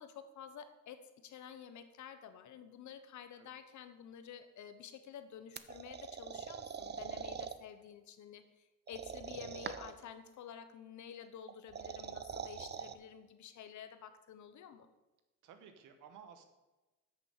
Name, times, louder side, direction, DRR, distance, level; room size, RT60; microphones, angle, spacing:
voice 1, 0.0-14.9, left 8 dB, 70° left, 10 dB, 1.1 m, -51 dB
sound 1, 5.6-7.6 8.9-10.0 11.5-12.9, right 7 dB, 35° right, 0.6 m, -43 dB
voice 2, 15.4-16.4, right 7 dB, 90° right, 8 dB, 1.2 m, -55 dB
8.1 x 6.9 x 6.7 m, 1.1 s
cardioid pair, 90°, 30 cm